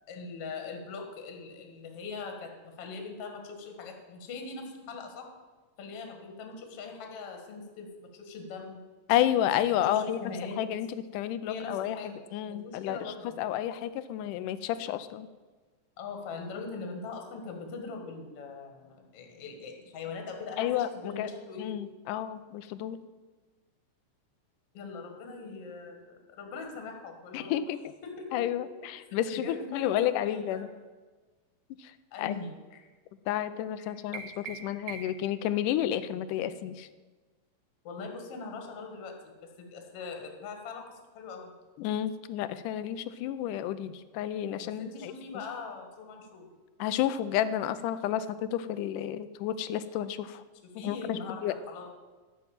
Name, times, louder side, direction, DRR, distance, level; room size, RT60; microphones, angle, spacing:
voice 1, 0.1-5.3 5.8-8.8 9.9-10.6 11.5-12.2 12.5-13.5 16.0-21.7 24.7-27.6 28.0-28.4 29.3-30.7 32.1-32.8 33.8-34.0 37.8-39.2 39.6-41.5 44.6-46.5 50.8-51.9, left 4 dB, 50° left, 3 dB, 2.3 m, -41 dB
voice 2, 9.1-10.2 10.6-12.0 12.3-13.0 13.4-15.3 20.6-21.3 21.6-23.0 27.3-27.9 28.3-30.7 31.8-31.9 32.2-32.3 33.3-36.9 41.8-45.1 46.8-50.4 50.8-51.6, left 11 dB, 80° left, 13 dB, 2.0 m, -31 dB
sound 1, 34.1-35.3, right 7 dB, 50° right, 2.1 m, -42 dB
12.0 x 6.6 x 8.8 m, 1.3 s
omnidirectional pair, 3.9 m